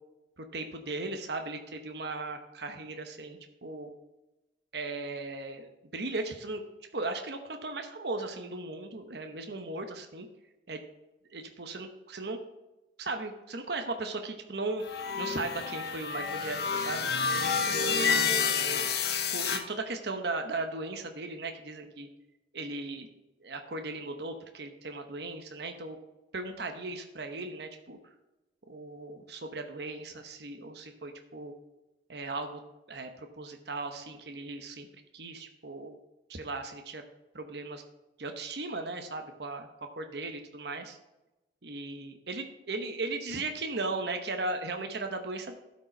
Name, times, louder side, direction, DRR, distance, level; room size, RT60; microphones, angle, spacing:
voice 1, 0.4-3.9 4.7-6.6 6.9-10.3 10.7-10.8 11.3-12.4 13.0-14.8 15.2-17.1 17.6-18.9 19.3-22.1 22.5-23.1 23.4-26.0 26.3-28.0 28.7-31.5 32.1-32.6 32.9-34.9 35.1-35.9 36.3-37.0 37.3-37.8 38.2-41.0 41.6-45.6, right 3 dB, 60° right, 5 dB, 1.0 m, -37 dB
sound 1, 14.8-19.6, left 6 dB, 60° left, 1.1 m, -29 dB
12.0 x 5.3 x 4.5 m, 1.0 s
head